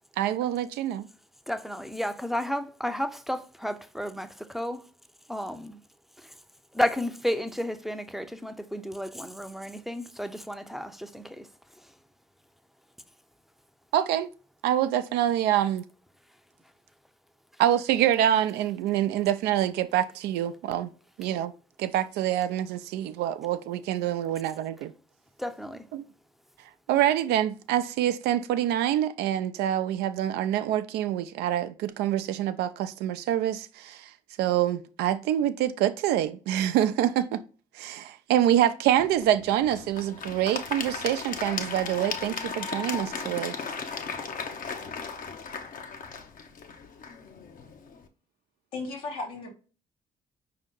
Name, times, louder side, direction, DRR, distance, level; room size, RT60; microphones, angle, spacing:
voice 1, 0.2-1.1 13.9-14.3 14.6-15.8 17.6-20.9 21.2-21.5 21.8-24.9 25.9-26.0 26.9-34.1 34.4-37.4 37.8-43.6, right 11 dB, 70° right, 0.4 m, -26 dB
voice 2, 1.5-4.9 5.3-5.8 6.2-6.4 6.7-11.9 25.4-25.9, equal, ahead, 0.6 m, -32 dB
Applause / Crowd, 39.0-48.0, left 5 dB, 50° left, 0.7 m, -36 dB
voice 3, 48.7-49.5, left 3 dB, 85° left, 1.2 m, -35 dB
5.1 x 2.8 x 3.6 m
hypercardioid pair, 45°, 18 cm